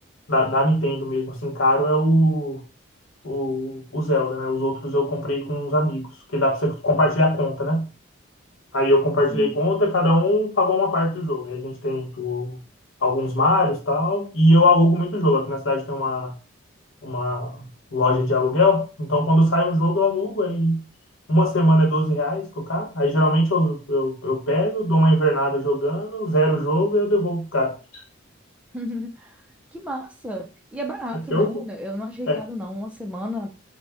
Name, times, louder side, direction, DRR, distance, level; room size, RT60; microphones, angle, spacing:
voice 1, 0.3-2.6 3.2-7.9 8.7-12.6 13.0-16.3 17.0-20.8 21.3-27.7 31.3-31.6 32.3-32.4, left 1 dB, 75° left, 1.0 m, -21 dB
voice 2, 28.7-29.4 29.7-33.5, left 1 dB, 5° right, 0.4 m, -32 dB
3.9 x 2.1 x 3.4 m
head